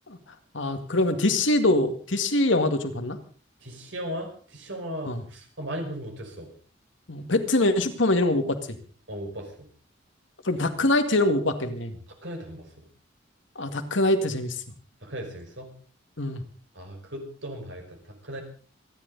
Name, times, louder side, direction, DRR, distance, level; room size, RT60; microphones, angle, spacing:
voice 1, 0.5-3.2 5.0-5.2 7.1-8.8 10.4-11.9 13.6-14.6 16.2-16.4, left 2 dB, 70° left, 7 dB, 2.0 m, -24 dB
voice 2, 3.6-6.5 9.1-9.7 12.2-12.9 15.0-15.7 16.7-18.4, equal, 70° right, 3 dB, 5.3 m, -37 dB
27.0 x 10.5 x 4.0 m, 0.43 s
head